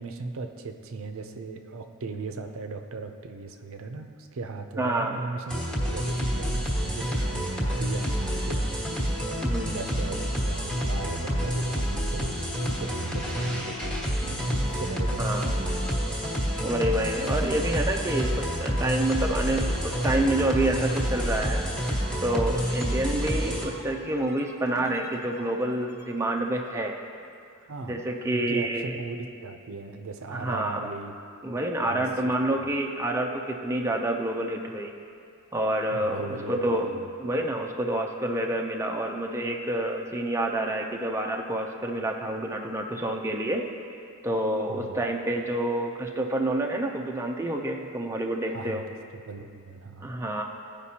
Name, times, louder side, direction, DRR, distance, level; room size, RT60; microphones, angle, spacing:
voice 1, 0.0-9.4 9.6-15.9 27.6-31.1 31.8-32.7 35.9-37.1 44.7-45.0 48.5-48.8 49.1-50.1, right 3 dB, 65° right, 6 dB, 0.5 m, -38 dB
voice 2, 4.8-5.2 9.4-9.8 15.2-15.5 16.6-21.6 22.2-27.0 27.9-29.0 30.3-30.8 31.4-34.9 35.5-36.2 36.5-43.6 44.2-48.8 50.0-50.4, right 1 dB, 10° right, 1 dB, 0.4 m, -28 dB
sound 1, 5.5-23.7, equal, 5° left, 1.3 m, -28 dB
sound 2, 9.6-27.3, left 1 dB, 40° left, 1.4 m, -46 dB
15.5 x 5.1 x 2.8 m, 2.4 s
head